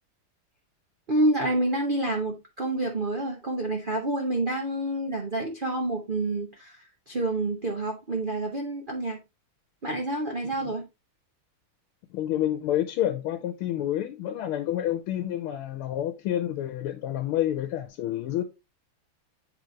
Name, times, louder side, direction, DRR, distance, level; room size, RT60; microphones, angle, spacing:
voice 1, 1.1-9.2 9.8-10.8, right 1 dB, 50° right, 0.6 m, -28 dB
voice 2, 12.1-18.4, left 12 dB, 90° left, 1.6 m, -29 dB
7.9 x 4.0 x 3.1 m
omnidirectional pair, 2.3 m